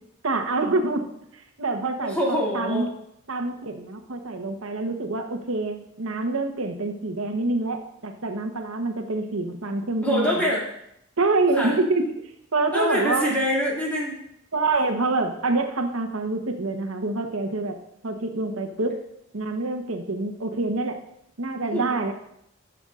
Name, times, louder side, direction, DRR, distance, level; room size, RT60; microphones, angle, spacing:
voice 1, 0.2-2.2 2.5-2.9 3.3-10.5 11.2-13.3 14.5-17.8 18.0-19.0 19.3-21.0 21.4-22.1, right 3 dB, 85° right, 5 dB, 1.0 m, -26 dB
voice 2, 2.0-2.9 10.0-10.6 11.5-11.7 12.7-14.2 21.7-22.0, equal, 10° left, -6 dB, 2.4 m, -25 dB
13.0 x 7.0 x 2.5 m, 0.75 s
head